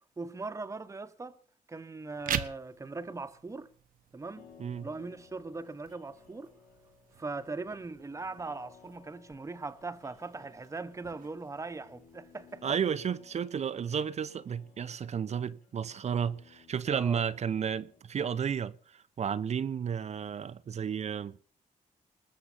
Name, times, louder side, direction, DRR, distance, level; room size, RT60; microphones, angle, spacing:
voice 1, 0.2-1.4 1.7-3.7 4.1-4.5 4.8-6.5 7.2-12.6 16.9-17.2, right 3 dB, 20° right, 1.3 m, -40 dB
sound 1, 2.1-13.1, right 9 dB, 75° right, 1.3 m, -44 dB
sound 2, 4.3-18.0, left 6 dB, 80° left, 6.1 m, -59 dB
voice 2, 12.6-21.4, right 7 dB, 50° right, 0.9 m, -32 dB
20.5 x 7.6 x 7.3 m
cardioid pair, 105°, 14 cm